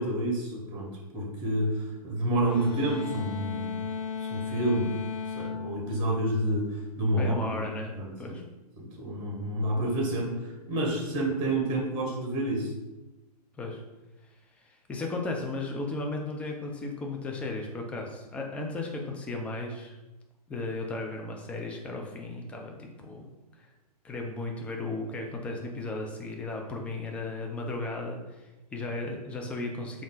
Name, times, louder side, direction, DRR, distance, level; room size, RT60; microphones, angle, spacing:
voice 1, 0.0-3.8 4.2-4.9 5.4-7.7 8.0-8.4 8.8-12.7, right 1 dB, 25° right, -1 dB, 0.9 m, -29 dB
sound 1, 2.5-6.9, left 6 dB, 30° left, 0.7 m, -36 dB
voice 2, 7.2-8.4 13.6-13.8 14.6-20.0 20.5-23.3 23.6-23.7 24.0-30.0, left 2 dB, 5° left, 1 dB, 0.3 m, -35 dB
3.5 x 2.4 x 3.7 m, 1.0 s
figure-of-eight pair, 115°, 21 cm